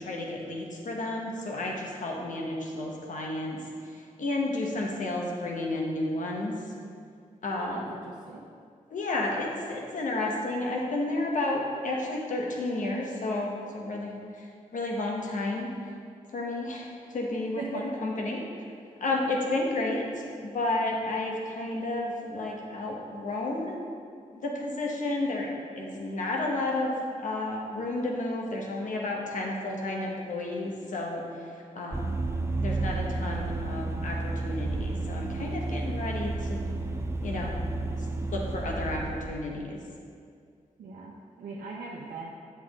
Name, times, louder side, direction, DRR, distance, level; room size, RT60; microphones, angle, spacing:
voice 1, 0.0-6.5 7.4-7.9 8.9-14.5 14.7-15.7 16.3-18.4 19.0-23.8 24.3-25.5 25.7-26.9 27.2-31.5 31.7-32.2 32.6-36.6 37.2-37.6 37.9-39.8, left 2 dB, 70° left, -1 dB, 1.2 m, -32 dB
voice 2, 7.5-8.4 17.6-17.9 40.8-42.3, right 3 dB, 80° right, -3 dB, 0.8 m, -39 dB
Vehicle, 31.9-39.3, right 2 dB, 20° right, 0.6 m, -31 dB
7.8 x 6.1 x 3.7 m, 2.3 s
cardioid pair, 60°, 14 cm